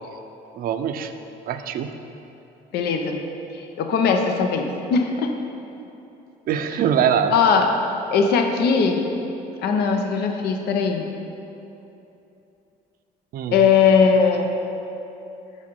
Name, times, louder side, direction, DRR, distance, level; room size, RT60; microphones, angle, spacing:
voice 1, 0.5-1.1 1.5-1.9 6.5-7.3 13.3-13.7, right 8 dB, 60° right, 8 dB, 0.5 m, -23 dB
voice 2, 2.7-3.2 3.5-5.3 7.3-7.7 8.1-9.1 9.6-11.1 13.5-14.5, left 5 dB, 75° left, 4 dB, 0.7 m, -19 dB
6.3 x 5.2 x 5.3 m, 2.9 s
cardioid pair, 110°, 17 cm